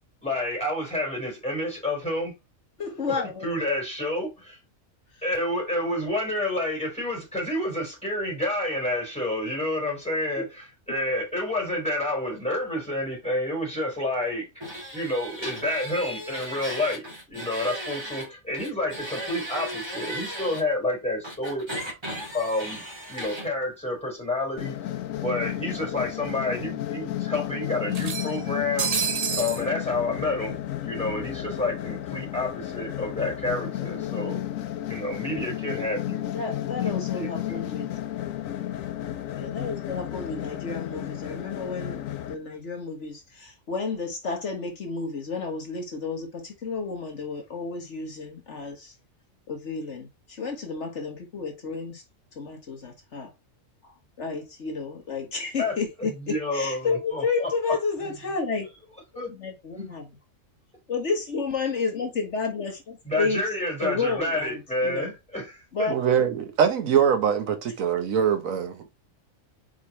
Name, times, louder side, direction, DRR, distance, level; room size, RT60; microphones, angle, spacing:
voice 1, 0.2-2.3 3.1-4.6 5.2-14.5 14.9-21.7 22.3-24.8 25.2-28.9 29.3-34.4 34.9-36.2 36.8-37.7 55.6-55.7 56.2-57.5 59.1-59.3 59.7-59.9 63.0-65.9, left 1 dB, 5° left, 3.9 m, -29 dB
voice 2, 2.8-3.5 5.1-5.2 10.4-10.5 35.3-35.5 36.3-37.9 39.3-48.9 49.5-52.0 52.4-53.3 53.8-58.7 59.3-60.1 60.9-63.4 63.8-65.1 65.7-66.0, left 4 dB, 60° left, 1.6 m, -31 dB
sound 1, 14.6-18.3 18.5-20.6 21.2-23.5, equal, 20° right, 2.2 m, -36 dB
sound 2, 24.5-24.6 24.9-25.0 26.1-26.2 26.5-26.6 27.9-29.6, right 7 dB, 55° right, 0.4 m, -29 dB
sound 3, 24.6-42.3, left 13 dB, 75° left, 1.1 m, -33 dB
voice 3, 65.9-68.9, right 8 dB, 80° right, 1.3 m, -23 dB
4.8 x 4.7 x 4.3 m
omnidirectional pair, 1.4 m